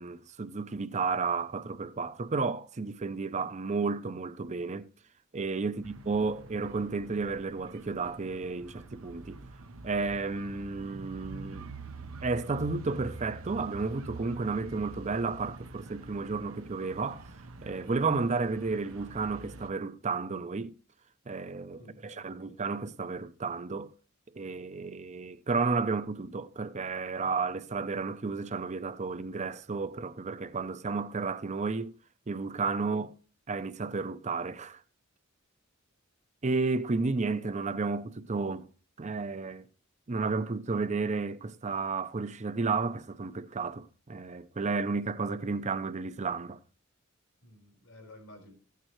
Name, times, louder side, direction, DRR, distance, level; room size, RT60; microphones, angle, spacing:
voice 1, 0.0-4.9 5.3-9.4 9.8-11.7 12.2-17.3 17.6-20.8 21.3-23.9 24.3-31.9 32.3-33.1 33.5-34.8 36.4-38.7 39.0-39.6 40.1-46.6, right 4 dB, 35° right, 0.6 m, -32 dB
sound 1, 5.8-19.7, right 3 dB, 80° right, 0.8 m, -46 dB
voice 2, 21.7-22.6 24.7-24.9 47.4-48.5, left 1 dB, 85° left, 4.4 m, -53 dB
15.5 x 9.2 x 3.1 m
head